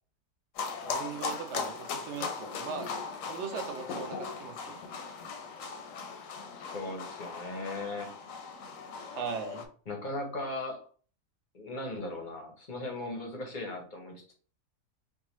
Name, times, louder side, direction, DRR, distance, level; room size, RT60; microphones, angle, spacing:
sound 1, 0.6-9.7, left 5 dB, 65° left, 0.9 m, -38 dB
voice 1, 0.8-2.9 3.3-4.8 9.1-9.7, right 6 dB, 65° right, 4 dB, 0.7 m, -39 dB
voice 2, 6.6-8.1 9.9-10.8 11.5-14.3, left 2 dB, 45° left, 2 dB, 0.6 m, -38 dB
4.6 x 2.4 x 3.0 m, 0.42 s
omnidirectional pair, 1.7 m